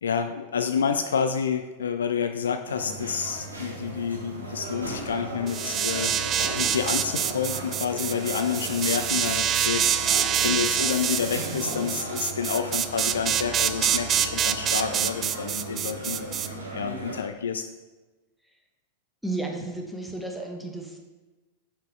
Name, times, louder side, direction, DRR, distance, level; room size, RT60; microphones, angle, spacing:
voice 1, 0.0-6.1 6.4-17.6, left 7 dB, 65° left, 8 dB, 0.3 m, -29 dB
sound 1, 2.7-17.2, right 2 dB, 80° right, 1.1 m, -36 dB
sound 2, 5.5-16.5, right 9 dB, 30° right, 0.3 m, -26 dB
voice 2, 19.2-21.0, right 2 dB, ahead, 1 dB, 1.0 m, -33 dB
5.3 x 5.1 x 4.7 m, 1.2 s
figure-of-eight pair, 90°, 0 cm